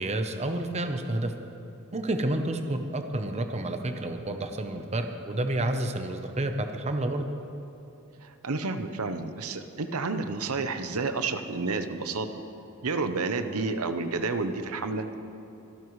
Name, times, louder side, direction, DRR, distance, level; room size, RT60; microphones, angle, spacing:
voice 1, 0.0-1.3 1.9-7.2, right 1 dB, 30° right, 6 dB, 0.8 m, -30 dB
voice 2, 8.2-12.3 12.8-15.0, right 3 dB, 70° right, 8 dB, 0.8 m, -30 dB
24.0 x 12.5 x 3.2 m, 2.8 s
head